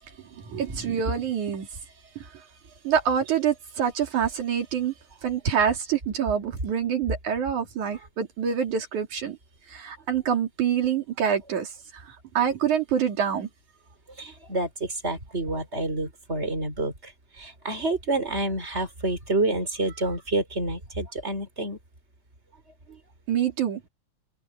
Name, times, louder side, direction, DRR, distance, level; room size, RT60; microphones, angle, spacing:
voice 1, 0.5-1.7 2.9-4.9 5.2-9.4 9.7-11.7 12.4-13.5 23.3-23.8, right 8 dB, 80° right, 3.9 m, -26 dB
voice 2, 14.2-17.1 17.4-21.8 22.9-23.0, right 2 dB, 20° right, 5.8 m, -28 dB
omnidirectional pair, 3.4 m